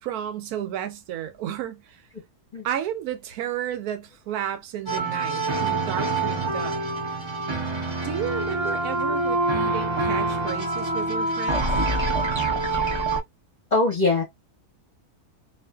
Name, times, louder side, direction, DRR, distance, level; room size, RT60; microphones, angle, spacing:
voice 1, 0.0-2.0 2.6-6.8 8.0-11.7, right 10 dB, 75° right, 1.0 m, -32 dB
sound 1, 4.9-13.2, right 2 dB, 50° right, 0.3 m, -25 dB
voice 2, 8.6-9.8 13.7-14.2, left 3 dB, 40° left, 0.7 m, -26 dB
2.5 x 2.4 x 2.2 m
omnidirectional pair, 1.7 m